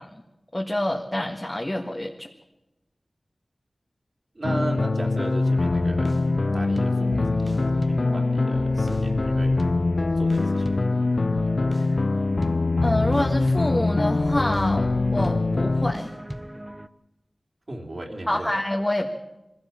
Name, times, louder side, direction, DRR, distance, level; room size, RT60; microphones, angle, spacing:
voice 1, 0.5-2.3 12.8-16.1 18.3-19.1, left 1 dB, 20° left, 1 dB, 1.7 m, -27 dB
voice 2, 4.3-6.2 6.5-9.6 10.2-10.8 17.7-18.5, right 1 dB, 45° right, 1 dB, 3.4 m, -35 dB
sound 1, 4.4-15.9, left 3 dB, 55° left, 0.7 m, -23 dB
sound 2, 5.4-16.9, right 1 dB, 15° right, 0.9 m, -36 dB
24.0 x 16.5 x 7.2 m, 0.98 s
wide cardioid pair, 75°, 0 cm